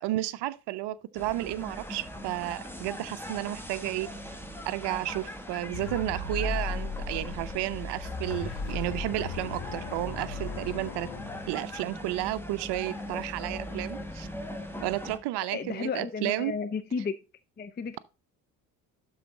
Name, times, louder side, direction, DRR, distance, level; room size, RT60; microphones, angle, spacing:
voice 1, 0.0-4.1 4.7-11.1 11.5-14.3 14.8-16.5, right 16 dB, 55° right, 0.7 m, -32 dB
sound 1, 1.1-15.2, left 1 dB, 5° left, 1.6 m, -40 dB
sound 2, 5.7-11.9, left 4 dB, 50° left, 1.7 m, -36 dB
voice 2, 15.5-17.1 17.6-18.0, left 5 dB, 20° left, 0.6 m, -33 dB
12.0 x 4.0 x 3.9 m
figure-of-eight pair, 45°, 50 cm